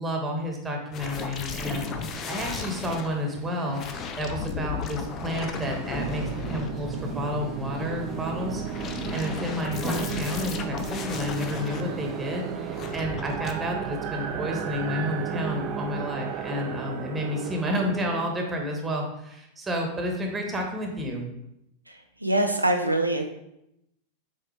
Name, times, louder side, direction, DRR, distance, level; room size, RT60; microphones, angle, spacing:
voice 1, 0.0-3.8 4.2-21.2, left 1 dB, 15° right, 1 dB, 1.5 m, -31 dB
sound 1, 0.9-3.1 3.7-7.2 8.4-11.8 12.7-13.5, left 6 dB, 30° left, 0.6 m, -36 dB
sound 2, 1.1-12.9, left 1 dB, 15° left, 1.4 m, -42 dB
sound 3, 5.9-18.3, right 7 dB, 40° right, 0.5 m, -34 dB
voice 2, 21.9-23.2, right 1 dB, 85° right, 4 dB, 0.5 m, -24 dB
7.3 x 4.2 x 3.4 m, 0.83 s
figure-of-eight pair, 90°, 0 cm